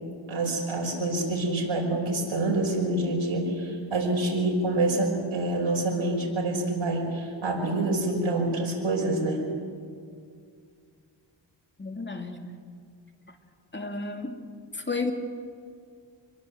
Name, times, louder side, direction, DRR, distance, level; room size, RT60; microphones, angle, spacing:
voice 1, 0.3-9.4, right 2 dB, 80° right, -1 dB, 5.6 m, -27 dB
voice 2, 11.8-12.4 13.3-13.4 13.7-14.4 14.7-15.1, left 3 dB, 25° left, 4 dB, 2.6 m, -32 dB
26.0 x 21.5 x 7.9 m, 2.2 s
wide cardioid pair, 90°, 47 cm